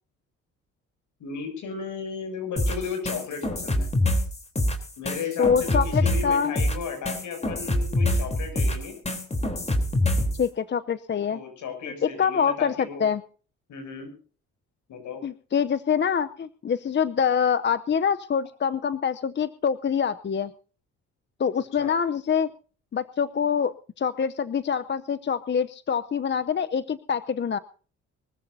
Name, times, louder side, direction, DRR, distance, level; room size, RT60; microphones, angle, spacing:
voice 1, 1.2-3.9 5.0-8.9 11.3-13.1 13.7-14.1 14.9-15.2 21.8-21.9, left 6 dB, 75° left, 6 dB, 7.4 m, -35 dB
sound 1, 2.6-10.4, left 1 dB, 20° left, 3.6 m, -25 dB
voice 2, 5.4-6.5 10.3-11.4 11.8-13.2 15.2-20.5 21.4-22.5 22.9-27.6, left 7 dB, 35° left, 12 dB, 0.8 m, -25 dB
23.5 x 14.0 x 2.8 m, 0.40 s
cardioid pair, 90°, 30 cm